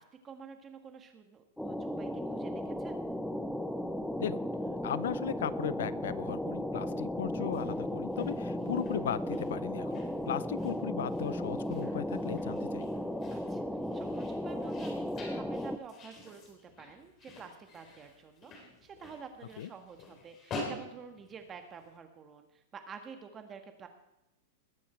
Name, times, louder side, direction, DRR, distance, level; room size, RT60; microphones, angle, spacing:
voice 1, 0.0-3.0 13.3-13.6 13.9-23.9, right 6 dB, 20° right, 6 dB, 1.7 m, -49 dB
sound 1, 1.6-15.8, left 1 dB, ahead, 0.6 m, -35 dB
voice 2, 4.8-12.9 19.6-19.7, left 10 dB, 80° left, 18 dB, 0.5 m, -37 dB
sound 2, 7.4-21.9, left 2 dB, 25° left, 3.4 m, -48 dB
20.5 x 8.5 x 4.5 m, 0.88 s
supercardioid pair, 155°, 0 cm